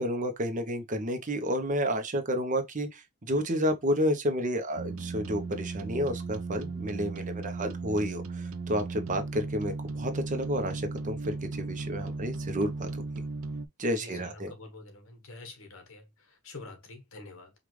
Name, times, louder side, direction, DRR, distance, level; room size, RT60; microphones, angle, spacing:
voice 1, 0.0-12.9 13.8-14.5, equal, 35° right, 0.8 m, -30 dB
sound 1, 4.8-13.7, right 3 dB, 65° right, 0.5 m, -36 dB
voice 2, 13.9-17.5, left 3 dB, 65° left, 1.3 m, -47 dB
5.1 x 2.5 x 3.0 m
head